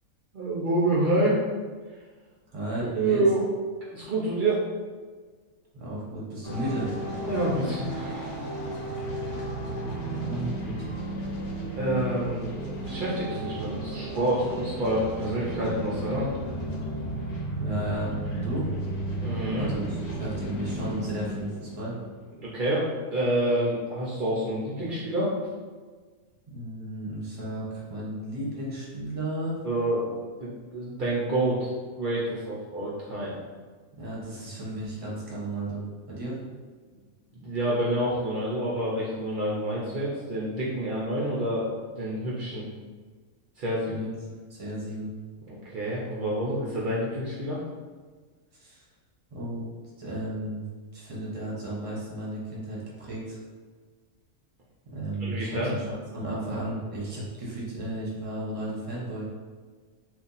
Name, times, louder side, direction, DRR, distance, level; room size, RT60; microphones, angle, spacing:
voice 1, 0.3-1.4 1.9-2.0 2.9-3.4 3.9-4.6 7.2-8.6 11.8-12.4 12.9-16.3 19.2-19.7 22.4-25.4 29.6-30.1 30.4-31.7 31.9-33.4 37.3-42.7 43.6-44.0 45.5-47.6 55.2-55.7, right 1 dB, 60° right, -6 dB, 0.5 m, -28 dB
voice 2, 2.5-3.2 5.7-6.9 10.1-10.8 17.6-18.7 19.6-21.9 26.5-29.6 34.0-36.4 43.9-44.1 44.5-45.1 48.5-48.8 49.3-49.7 50.0-50.6 50.9-53.4 54.9-59.3, right 1 dB, 25° right, -6 dB, 0.8 m, -34 dB
sound 1, 6.4-22.8, right 1 dB, 90° left, 1.3 m, -33 dB
2.7 x 2.5 x 3.8 m, 1.5 s
omnidirectional pair, 1.5 m